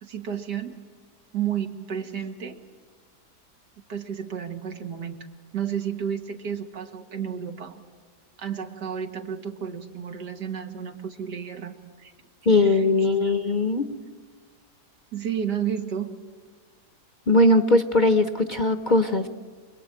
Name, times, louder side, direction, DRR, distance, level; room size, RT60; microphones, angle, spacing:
voice 1, 0.0-0.8 1.3-2.6 3.9-5.2 5.5-7.8 8.4-12.1 12.6-13.3 15.1-16.1, right 8 dB, 85° right, 6 dB, 2.3 m, -32 dB
voice 2, 12.5-13.9 17.3-19.3, left 2 dB, 40° left, 10 dB, 0.7 m, -20 dB
27.5 x 21.0 x 8.9 m, 1.5 s
omnidirectional pair, 1.8 m